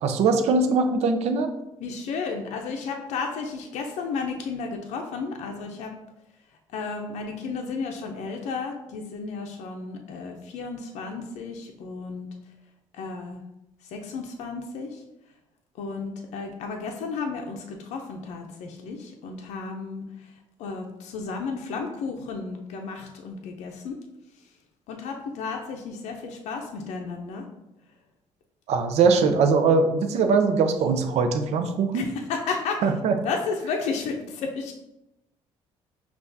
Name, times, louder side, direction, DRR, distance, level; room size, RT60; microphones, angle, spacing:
voice 1, 0.0-1.5 28.7-32.1 32.8-33.2, right 4 dB, 70° right, 7 dB, 0.5 m, -21 dB
voice 2, 1.8-5.9 6.7-12.3 12.9-13.4 13.8-15.0 15.8-20.3 20.6-24.0 24.9-27.5 31.9-32.8 33.2-34.7, left 4 dB, 75° left, 2 dB, 0.5 m, -33 dB
5.6 x 2.4 x 2.7 m, 0.90 s
cardioid pair, 110°, 12 cm